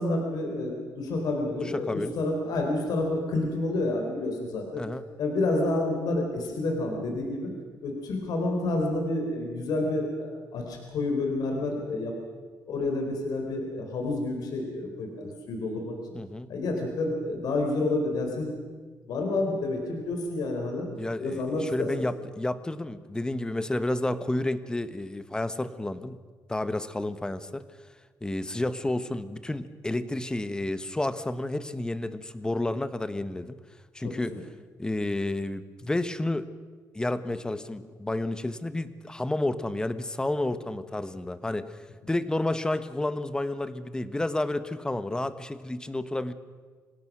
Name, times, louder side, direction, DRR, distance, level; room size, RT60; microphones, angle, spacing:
voice 1, 0.0-4.8 5.2-7.5 7.8-12.1 12.7-16.0 16.5-18.5 19.1-20.9 21.2-21.9 34.0-34.4, left 2 dB, 70° left, 2 dB, 4.1 m, -29 dB
voice 2, 1.6-2.1 4.8-5.1 16.1-16.5 21.0-26.2 26.5-27.7 28.2-33.6 33.9-34.3 34.8-36.5 36.9-46.3, left 1 dB, 10° left, 12 dB, 1.1 m, -30 dB
25.5 x 18.0 x 6.2 m, 1.5 s
cardioid pair, 110°, 7 cm